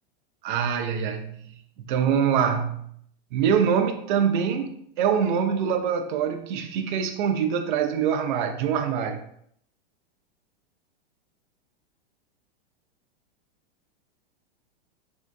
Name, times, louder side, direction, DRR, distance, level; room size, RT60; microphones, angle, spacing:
voice 1, 0.4-1.5 1.9-2.9 3.3-9.2, right 7 dB, 55° right, 0.4 m, -24 dB
3.6 x 2.6 x 2.2 m
supercardioid pair, 170°, 30 cm